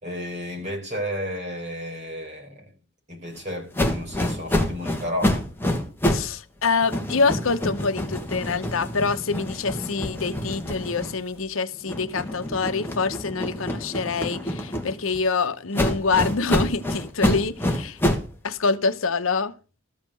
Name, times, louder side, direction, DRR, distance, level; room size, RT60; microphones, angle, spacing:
voice 1, 0.0-2.7 3.1-5.4, equal, 35° right, 4.5 m, -32 dB
sound 1, 3.7-6.3 6.6-11.4 11.8-15.2 15.7-18.3, left 1 dB, 10° left, 1.4 m, -27 dB
voice 2, 6.0-18.0 18.4-19.5, left 4 dB, 85° left, 0.8 m, -26 dB
13.5 x 5.7 x 6.3 m
head